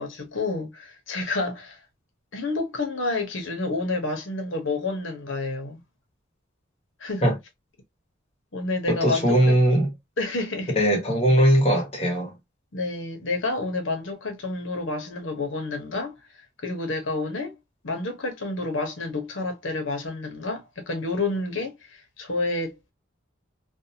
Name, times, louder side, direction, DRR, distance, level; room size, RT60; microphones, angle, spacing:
voice 1, 0.0-1.8 2.3-5.8 7.0-7.3 8.5-9.5 10.2-10.8 12.7-16.2 16.6-17.5 17.8-22.9, left 2 dB, 75° left, 0.9 m, -29 dB
voice 2, 8.9-9.9 10.8-12.3, equal, 30° left, 1.1 m, -20 dB
2.6 x 2.2 x 2.7 m
head